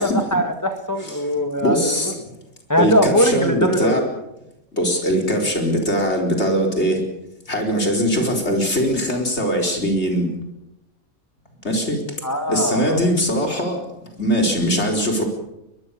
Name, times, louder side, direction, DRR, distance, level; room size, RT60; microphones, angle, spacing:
voice 1, 0.0-2.1 2.7-4.1 12.2-13.0, equal, 10° left, 6 dB, 2.0 m, -21 dB
voice 2, 1.6-2.1 2.8-4.0 4.7-7.0 7.4-10.3 11.6-12.0 12.5-15.2, equal, 50° left, 2 dB, 4.6 m, -21 dB
22.0 x 21.5 x 7.0 m, 0.90 s
omnidirectional pair, 1.5 m